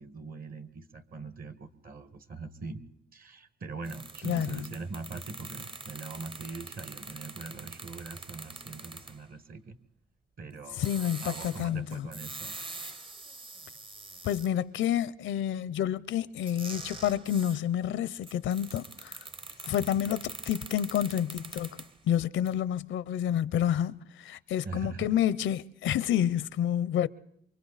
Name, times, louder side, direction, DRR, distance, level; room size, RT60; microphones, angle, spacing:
voice 1, 0.0-2.8 3.1-9.7 10.4-12.6 19.8-20.1 24.6-25.1, right 3 dB, 45° right, 1.7 m, -42 dB
sound 1, 3.8-9.2 10.7-14.5 16.4-17.6 18.2-22.0 22.5-22.6, right 3 dB, 25° right, 1.0 m, -44 dB
voice 2, 10.8-12.1 14.2-19.2 19.6-27.1, left 10 dB, 75° left, 0.7 m, -29 dB
28.0 x 24.5 x 4.1 m
cardioid pair, 90°, 20 cm